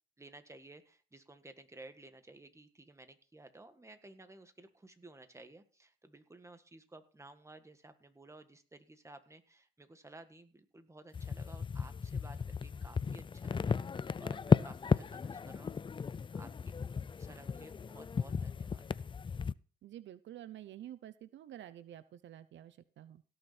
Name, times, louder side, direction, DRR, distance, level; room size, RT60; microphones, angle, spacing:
voice 1, 0.2-13.8 14.2-15.8 16.3-16.7 17.2-18.8, right 2 dB, 15° right, 8 dB, 1.7 m, -55 dB
sound 1, 11.1-19.5, left 6 dB, 25° left, 0.4 m, -34 dB
voice 2, 19.8-23.2, right 12 dB, 70° right, 14 dB, 0.6 m, -49 dB
17.0 x 6.7 x 4.3 m, 0.39 s
cardioid pair, 90°, 20 cm